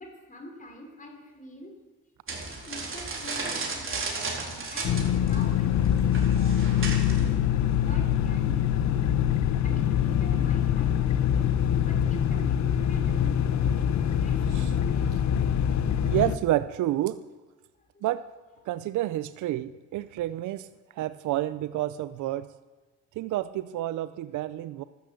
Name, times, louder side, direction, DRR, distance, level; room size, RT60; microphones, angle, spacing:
voice 1, 0.0-1.8 2.7-7.3 7.8-9.1 9.6-11.5 11.8-15.1 17.9-18.0, left 1 dB, 25° left, 2 dB, 4.1 m, -45 dB
sound 1, 2.3-7.4, right 3 dB, 45° right, 4.1 m, -34 dB
sound 2, 4.8-16.4, left 9 dB, 65° left, 0.9 m, -24 dB
voice 2, 16.0-17.2 18.0-18.2 18.7-20.7 21.0-22.5 23.2-24.8, right 14 dB, 75° right, 14 dB, 0.6 m, -29 dB
13.0 x 12.5 x 7.7 m, 1.2 s
cardioid pair, 90°, 30 cm